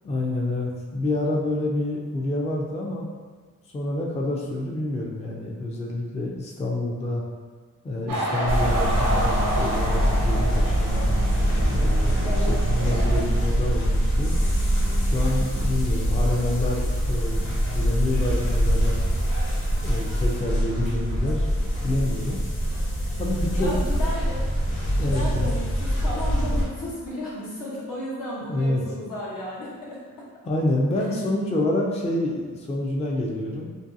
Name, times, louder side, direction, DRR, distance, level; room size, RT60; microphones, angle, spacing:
voice 1, 0.0-3.1 3.7-7.2 7.8-11.1 11.7-14.3 15.0-19.0 19.8-21.5 21.8-22.4 23.2-23.7 25.0-25.5 28.5-28.8 30.4-33.7, left 1 dB, 20° left, -2 dB, 0.4 m, -28 dB
sound 1, 8.1-13.2, right 1 dB, 90° right, 0.7 m, -29 dB
sound 2, 8.5-26.6, equal, 35° left, 0.8 m, -24 dB
voice 2, 12.2-12.6 23.5-24.5 25.0-30.3, left 1 dB, 75° left, -7 dB, 0.9 m, -33 dB
2.5 x 2.2 x 2.5 m, 1.5 s
cardioid pair, 75°, 33 cm